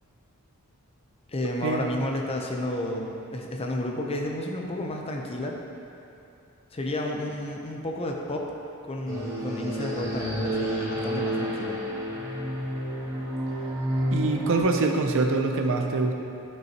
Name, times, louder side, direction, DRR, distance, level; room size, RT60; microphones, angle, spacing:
voice 1, 1.3-5.6 6.7-8.5 8.8-11.8, left 1 dB, 25° left, 1 dB, 0.6 m, -31 dB
sound 1, 9.1-14.6, equal, 15° right, 1.1 m, -30 dB
voice 2, 14.1-16.1, right 3 dB, 60° right, 3 dB, 0.6 m, -24 dB
9.2 x 5.4 x 2.9 m, 2.8 s
head